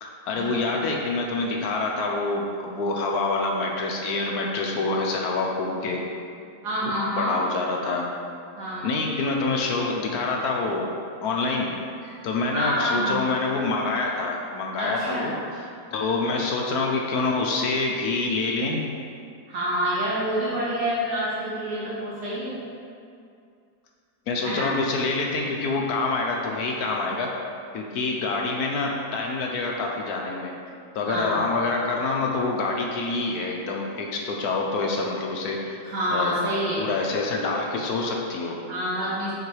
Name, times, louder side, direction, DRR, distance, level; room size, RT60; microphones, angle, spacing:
voice 1, 0.0-6.0 6.9-8.1 8.8-10.9 11.2-11.7 12.2-18.8 24.3-27.3 27.7-30.6 30.9-35.8 36.1-36.3 36.8-38.6, left 3 dB, 70° left, 0 dB, 1.1 m, -26 dB
voice 2, 6.6-7.4 8.6-8.9 12.0-12.1 12.4-13.2 14.8-15.3 19.5-22.6 24.4-24.7 31.1-31.4 35.8-36.9 38.7-39.3, equal, 75° right, -8 dB, 1.7 m, -27 dB
7.2 x 4.5 x 3.2 m, 2.4 s
omnidirectional pair, 1.8 m